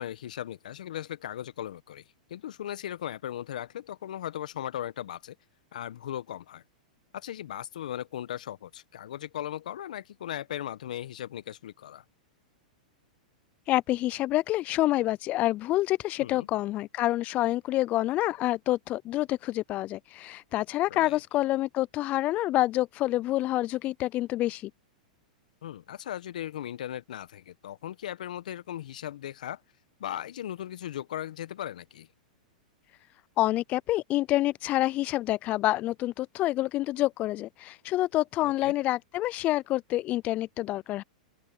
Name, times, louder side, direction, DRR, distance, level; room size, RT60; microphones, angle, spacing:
voice 1, 0.0-2.0 2.3-5.3 5.7-6.6 7.1-12.0 16.2-16.5 20.9-21.2 25.6-29.6 30.0-32.1 38.4-38.7, left 11 dB, 70° left, 1.5 m, -37 dB
voice 2, 13.7-24.7 33.4-41.0, left 16 dB, 35° left, 0.3 m, -27 dB
open air
hypercardioid pair, 110°, 4 cm